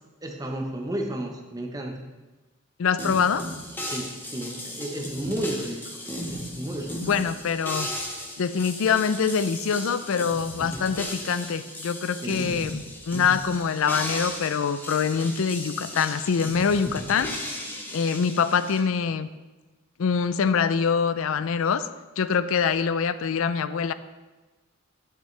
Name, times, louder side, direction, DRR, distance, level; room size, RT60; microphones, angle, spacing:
voice 1, 0.2-2.0 3.8-6.0 6.3-7.1 12.2-12.4, right 1 dB, 15° right, 2 dB, 0.9 m, -32 dB
voice 2, 2.8-3.5 7.0-7.9 8.4-17.3 17.9-19.3 20.0-21.9 22.2-23.9, left 6 dB, 70° left, 13 dB, 0.4 m, -24 dB
sound 1, 3.0-18.8, equal, 10° left, 0.9 m, -36 dB
11.5 x 6.6 x 3.3 m, 1.2 s
head